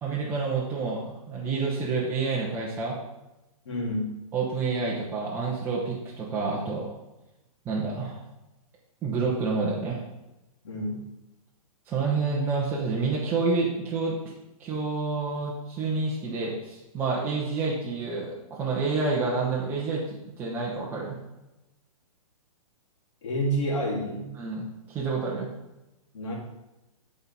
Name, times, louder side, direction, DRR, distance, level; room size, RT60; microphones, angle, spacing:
voice 1, 0.0-3.0 4.3-6.9 7.7-8.2 9.0-10.0 11.9-14.2 14.6-21.2 24.4-25.5, right 4 dB, 10° right, -5 dB, 0.7 m, -28 dB
voice 2, 3.7-4.1 10.6-11.0 23.2-24.3 26.1-26.3, equal, 55° left, -4 dB, 2.3 m, -29 dB
9.3 x 4.1 x 4.0 m, 0.98 s
hypercardioid pair, 165°, 18 cm